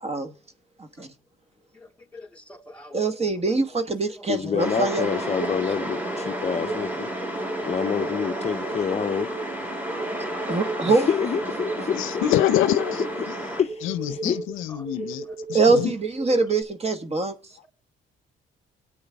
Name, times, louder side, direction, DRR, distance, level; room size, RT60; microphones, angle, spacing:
voice 1, 1.7-3.4 4.2-4.6 6.1-6.2 7.6-7.7 14.7-14.8, left 1 dB, 5° left, 3.3 m, -47 dB
voice 2, 2.9-5.2 10.5-11.1 15.5-17.3, right 3 dB, 30° right, 1.2 m, -23 dB
voice 3, 4.3-7.1 7.6-9.3 10.9-12.2 13.6-14.4, left 7 dB, 35° left, 0.5 m, -27 dB
sound 1, 4.6-13.6, equal, 10° right, 2.6 m, -31 dB
sound 2, 6.6-16.6, right 3 dB, 85° right, 5.4 m, -36 dB
voice 4, 11.9-13.4 13.8-15.9, left 12 dB, 85° left, 0.6 m, -26 dB
24.5 x 8.8 x 3.4 m
cardioid pair, 90°, 20 cm